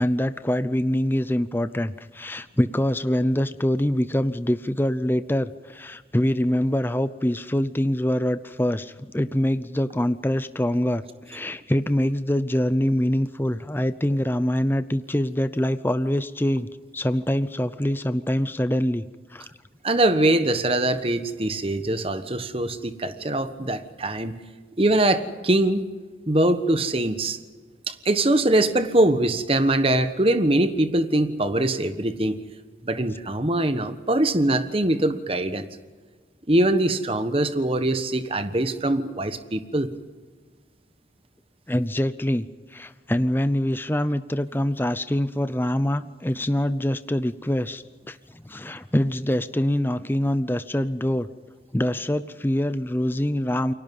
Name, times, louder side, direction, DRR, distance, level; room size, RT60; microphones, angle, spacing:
voice 1, 0.0-16.7 16.9-19.5 37.6-37.7 41.7-42.5 42.7-51.3 51.7-53.7, equal, 10° left, 13 dB, 0.6 m, -24 dB
voice 2, 19.8-24.3 24.8-25.8 26.3-27.4 27.9-32.4 32.8-35.7 36.5-39.9, right 1 dB, 30° right, 10 dB, 1.3 m, -22 dB
29.0 x 23.5 x 5.5 m, 1.5 s
head